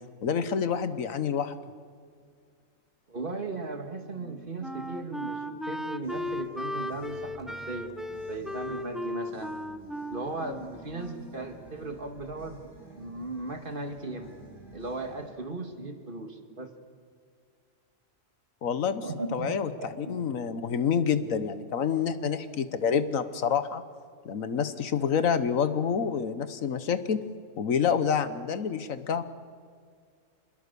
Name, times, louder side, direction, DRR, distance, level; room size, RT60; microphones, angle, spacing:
voice 1, 0.2-1.5 18.6-19.0 19.3-23.8 24.2-27.2 27.6-29.2, left 7 dB, 75° left, 12 dB, 1.4 m, -28 dB
voice 2, 3.1-7.9 8.3-9.5 10.1-12.6 13.0-14.3 14.7-16.7 19.0-20.4, right 2 dB, 40° right, 5 dB, 2.1 m, -37 dB
Wind instrument woodwind instrument, 4.2-11.4, left 1 dB, ahead, 0.8 m, -36 dB
sound 1, 6.0-15.3, right 1 dB, 15° left, 7.4 m, -51 dB
27.0 x 21.5 x 6.9 m, 2.1 s
omnidirectional pair, 1.4 m